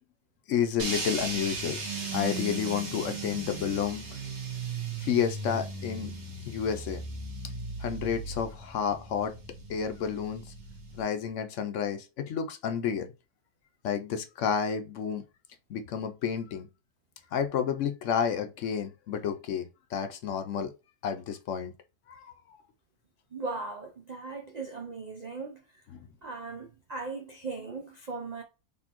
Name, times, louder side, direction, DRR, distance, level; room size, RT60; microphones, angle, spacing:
voice 1, 0.5-1.8 2.1-4.1 5.0-6.1 6.5-7.0 7.8-9.4 9.7-10.5 11.0-13.1 13.8-15.2 15.7-16.7 17.3-19.7 19.9-20.7 21.0-21.7 22.1-22.3 26.0-26.1, left 7 dB, 70° left, 0.8 m, -30 dB
sound 1, 0.8-11.0, right 3 dB, 80° right, 1.7 m, -37 dB
voice 2, 23.3-25.6 26.2-28.4, right 3 dB, 60° right, 0.4 m, -38 dB
4.2 x 3.5 x 2.9 m
omnidirectional pair, 1.5 m